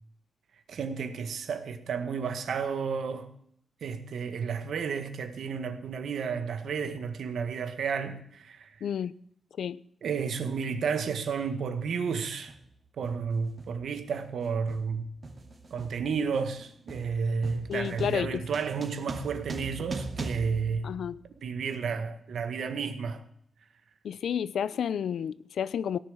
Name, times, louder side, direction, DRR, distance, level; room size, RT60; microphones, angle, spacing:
voice 1, 0.7-3.3 3.8-8.7 10.0-12.5 13.0-15.1 15.7-20.9 21.4-23.2, right 6 dB, 80° right, 1.8 m, -32 dB
voice 2, 8.8-9.1 9.6-9.8 17.7-18.4 20.8-21.2 24.0-26.0, left 8 dB, 85° left, 0.6 m, -31 dB
sound 1, 11.4-11.6 12.5-12.7 13.0-21.6, right 3 dB, 35° right, 2.4 m, -41 dB
17.5 x 7.4 x 9.3 m
wide cardioid pair, 160°, 0 cm